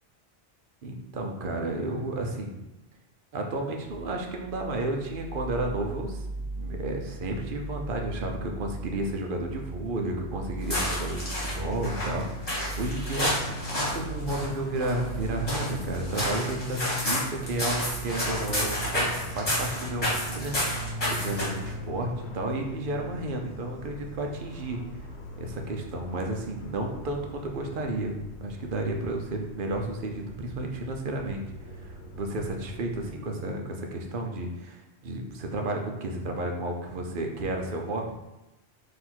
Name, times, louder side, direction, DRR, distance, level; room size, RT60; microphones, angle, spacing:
voice 1, 0.8-2.6 3.3-6.2 6.5-20.5 21.1-24.8 25.4-31.4 31.7-38.1, right 2 dB, 60° right, 2 dB, 0.8 m, -32 dB
sound 1, 3.9-16.6, right 2 dB, 20° right, 0.5 m, -39 dB
sound 2, 10.6-21.7, left 1 dB, 35° left, 1.5 m, -31 dB
Fixed-wing aircraft airplane, 13.4-33.1, right 1 dB, 85° left, 1.0 m, -40 dB
3.9 x 2.8 x 4.4 m, 0.99 s
omnidirectional pair, 1.1 m